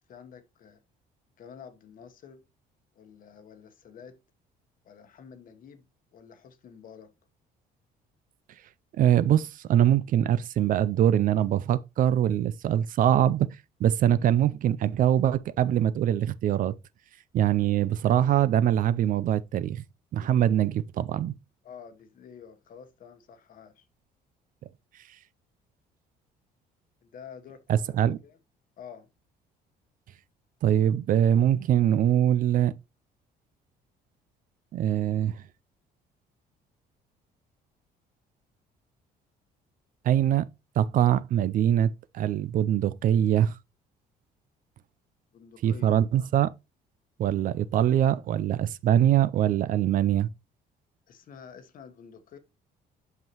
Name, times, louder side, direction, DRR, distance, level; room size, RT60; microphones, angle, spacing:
voice 1, 0.1-0.8 1.4-2.4 2.9-4.2 4.8-5.9 6.1-7.1 21.6-23.9 27.0-28.4 28.8-29.1 45.3-46.3 51.1-52.4, left 7 dB, 55° left, 1.1 m, -49 dB
voice 2, 9.0-13.5 13.8-16.8 17.3-19.8 20.1-21.3 27.7-28.2 30.6-32.8 34.7-35.4 40.0-40.5 40.8-43.6 45.6-46.5 47.2-50.3, right 11 dB, 55° right, 0.4 m, -23 dB
8.0 x 5.6 x 2.9 m
cardioid pair, 110°, 17 cm